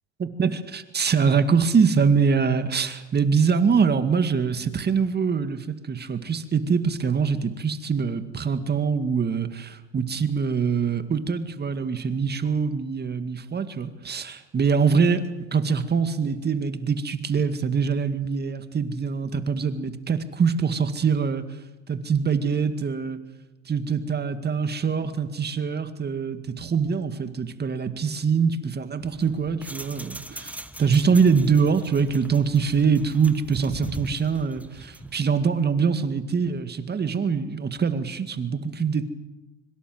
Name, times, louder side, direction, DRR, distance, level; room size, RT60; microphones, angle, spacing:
voice 1, 0.2-21.4 21.9-23.2 23.7-39.1, right 5 dB, 25° right, 10 dB, 2.1 m, -24 dB
sound 1, 29.0-35.2, right 1 dB, 5° right, 1.4 m, -40 dB
25.0 x 23.5 x 7.9 m, 1.0 s
supercardioid pair, 95°, 38 cm